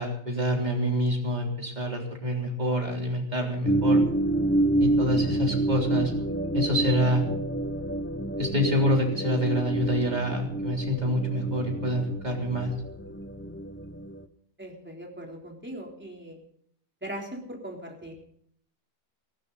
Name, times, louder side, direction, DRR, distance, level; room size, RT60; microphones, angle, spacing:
voice 1, 0.0-4.0 4.8-6.1 6.5-7.2 8.4-12.7, equal, 25° right, 0 dB, 3.8 m, -27 dB
sound 1, 3.7-14.2, right 1 dB, 15° left, 0.4 m, -28 dB
voice 2, 14.6-16.4 17.0-18.1, right 1 dB, 5° right, 0 dB, 3.6 m, -39 dB
18.0 x 16.5 x 4.1 m, 0.65 s
omnidirectional pair, 1.8 m